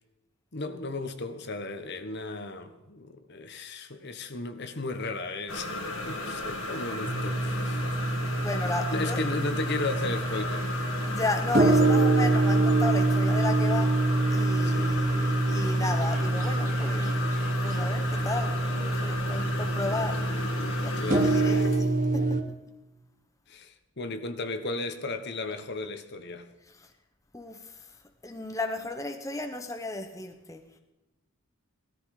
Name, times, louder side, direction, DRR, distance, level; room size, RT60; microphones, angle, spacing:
voice 1, 0.5-5.7 6.0-7.8 8.9-10.7 14.6-15.0 19.3-19.4 21.0-21.4 23.5-26.5, left 2 dB, 50° left, 8 dB, 1.3 m, -35 dB
sound 1, 5.5-21.8, left 2 dB, 75° left, 2.3 m, -34 dB
sound 2, 7.1-22.4, right 2 dB, 40° right, 1.3 m, -26 dB
voice 2, 8.3-9.2 11.1-13.9 14.3-20.3 20.8-22.6 26.7-26.9 27.3-28.0 28.2-30.6, left 2 dB, 15° left, 5 dB, 1.0 m, -34 dB
18.0 x 14.0 x 5.0 m, 0.98 s
head